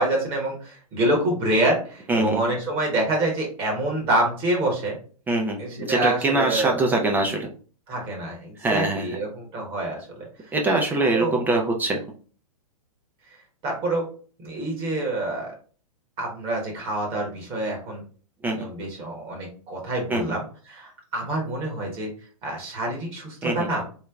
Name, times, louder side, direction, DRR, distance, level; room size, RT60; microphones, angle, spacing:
voice 1, 0.0-5.0 5.6-6.8 7.9-10.5 11.1-11.4 13.6-14.0 14.4-15.5 16.2-18.0 18.4-22.1 22.4-23.8, right 1 dB, 30° right, 0 dB, 1.2 m, -27 dB
voice 2, 2.1-2.4 5.3-7.5 8.6-9.1 10.5-12.0 18.4-18.6 20.1-20.3 23.4-23.7, right 2 dB, 10° right, 1 dB, 0.3 m, -23 dB
3.2 x 2.2 x 3.5 m, 0.41 s
hypercardioid pair, 135°, 18 cm